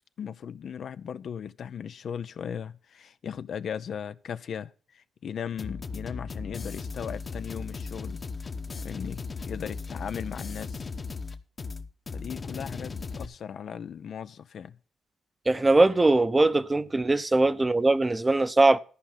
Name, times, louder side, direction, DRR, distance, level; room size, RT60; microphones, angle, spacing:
voice 1, 0.2-8.2 8.8-10.9 12.1-14.8 17.1-17.2, left 8 dB, 65° left, 0.6 m, -37 dB
sound 1, 5.6-13.3, left 4 dB, 40° left, 1.1 m, -37 dB
voice 2, 15.5-18.8, right 2 dB, 20° right, 0.8 m, -21 dB
13.5 x 5.1 x 7.3 m
supercardioid pair, 65°, 0 cm